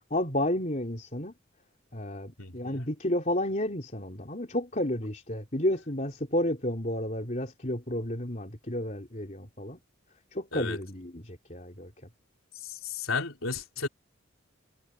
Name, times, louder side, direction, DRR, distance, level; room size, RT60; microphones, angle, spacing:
voice 1, 0.1-1.3 1.9-9.8 10.3-11.9, left 1 dB, 35° left, 3.7 m, -31 dB
voice 2, 2.4-2.9 10.5-10.8 12.6-13.9, left 4 dB, 85° left, 3.7 m, -34 dB
head